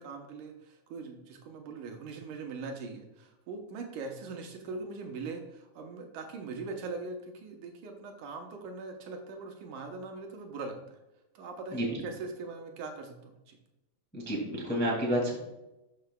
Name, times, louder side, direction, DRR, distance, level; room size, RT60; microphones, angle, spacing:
voice 1, 0.0-11.0 11.4-13.6, right 3 dB, 75° right, 3 dB, 2.2 m, -41 dB
voice 2, 11.7-12.0 14.1-15.4, equal, 5° left, -3 dB, 1.1 m, -30 dB
12.0 x 5.8 x 2.2 m, 0.94 s
omnidirectional pair, 3.9 m